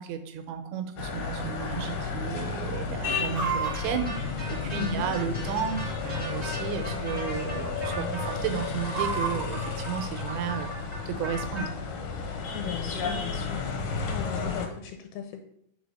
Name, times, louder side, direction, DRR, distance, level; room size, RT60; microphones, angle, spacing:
voice 1, 0.0-10.7 11.1-11.7, right 8 dB, 85° right, 7 dB, 2.7 m, -33 dB
sound 1, 1.0-14.7, left 5 dB, 70° left, 2.1 m, -32 dB
Chicken rooster, 1.6-2.1 2.3-2.4 2.8-5.1 5.8-6.6 6.9-7.2 7.4-7.9 8.4-9.5, right 6 dB, 60° right, 2.0 m, -33 dB
sound 2, 3.1-11.7, right 1 dB, 15° left, 2.2 m, -40 dB
voice 2, 4.7-5.1 12.5-13.6 14.1-15.4, left 8 dB, 85° left, 6 dB, 2.5 m, -37 dB
4.9 x 4.8 x 5.3 m, 0.74 s
omnidirectional pair, 4.4 m